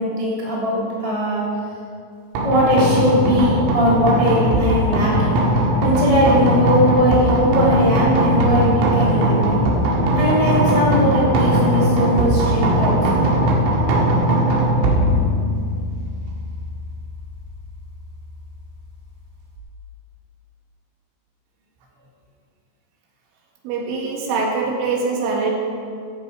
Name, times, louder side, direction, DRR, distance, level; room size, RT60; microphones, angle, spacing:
voice 1, 0.0-1.4 2.4-5.4 5.8-9.6 10.1-13.2, equal, 30° left, -7 dB, 0.6 m, -19 dB
sound 1, 2.4-19.6, right 1 dB, 85° right, 4.6 m, -20 dB
voice 2, 23.6-25.5, right 4 dB, 70° right, 0 dB, 4.0 m, -23 dB
15.0 x 11.0 x 4.8 m, 2.4 s
omnidirectional pair, 5.9 m